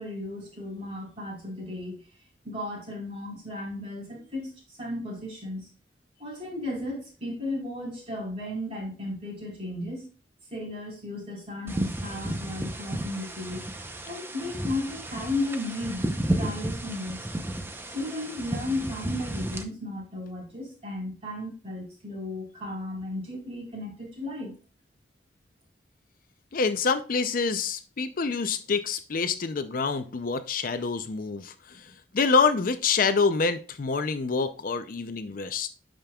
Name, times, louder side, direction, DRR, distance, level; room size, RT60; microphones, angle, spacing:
voice 1, 0.0-2.0 2.4-5.7 6.2-10.1 10.5-13.6 14.0-17.3 17.9-24.5, left 1 dB, 35° right, 4.1 m, -35 dB
sound 1, 11.7-19.6, right 1 dB, 15° right, 0.7 m, -33 dB
voice 2, 26.5-31.8 32.1-35.7, left 4 dB, 50° left, 0.5 m, -26 dB
11.5 x 5.1 x 2.3 m
head